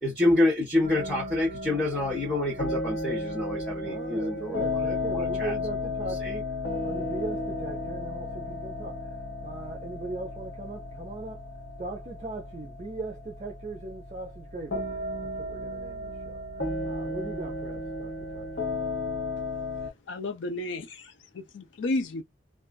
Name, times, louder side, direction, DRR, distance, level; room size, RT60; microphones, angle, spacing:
voice 1, 0.0-4.6 5.1-5.5 6.2-6.3, left 2 dB, 5° left, 0.8 m, -27 dB
sound 1, 0.8-19.9, left 2 dB, 55° left, 1.0 m, -34 dB
voice 2, 3.8-6.6 6.8-11.5 11.8-16.4 16.8-18.7, right 3 dB, 35° right, 0.5 m, -39 dB
voice 3, 20.1-22.2, left 2 dB, 70° left, 0.5 m, -32 dB
2.4 x 2.3 x 2.2 m
head